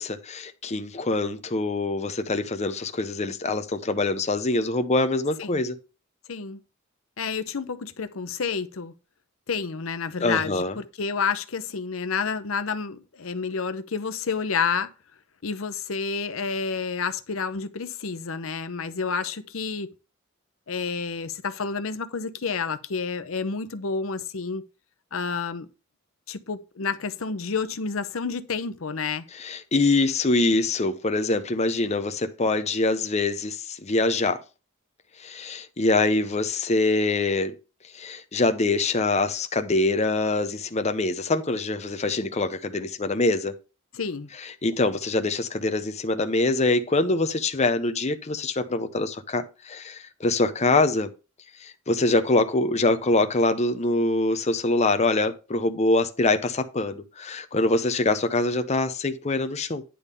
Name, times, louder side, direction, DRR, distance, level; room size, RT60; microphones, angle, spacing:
voice 1, 0.0-5.8 10.2-10.8 29.3-34.4 35.2-37.5 37.9-43.6 44.4-51.1 51.6-59.8, left 2 dB, 35° left, 0.7 m, -24 dB
voice 2, 6.3-6.6 7.2-8.9 9.5-14.9 15.4-19.9 20.7-24.6 25.1-25.7 26.3-29.2 43.9-44.3, left 5 dB, 80° left, 0.8 m, -29 dB
10.0 x 3.6 x 6.7 m
head